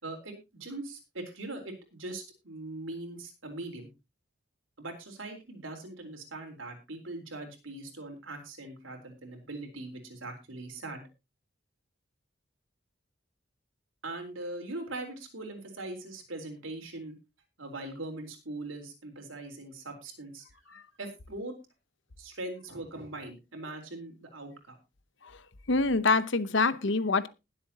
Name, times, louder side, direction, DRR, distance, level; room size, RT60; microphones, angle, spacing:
voice 1, 0.0-3.9 4.8-11.0 14.0-17.1 17.6-21.5 22.2-24.8, right 2 dB, 80° right, 4.0 m, -41 dB
voice 2, 25.7-27.3, left 3 dB, 70° left, 0.9 m, -25 dB
20.5 x 7.8 x 2.9 m
head